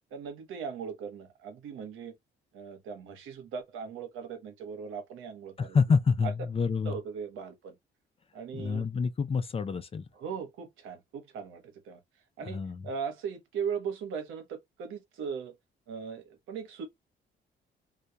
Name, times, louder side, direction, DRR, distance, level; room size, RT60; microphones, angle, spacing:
voice 1, 0.1-2.1 2.5-5.8 6.2-6.3 6.8-7.8 8.3-8.9 10.1-12.0 12.4-15.6 15.9-16.8, right 6 dB, 85° right, 0.9 m, -38 dB
voice 2, 5.6-6.9 8.5-10.0 12.5-12.8, left 5 dB, 30° left, 0.4 m, -27 dB
2.2 x 2.1 x 2.7 m
cardioid pair, 90°, 20 cm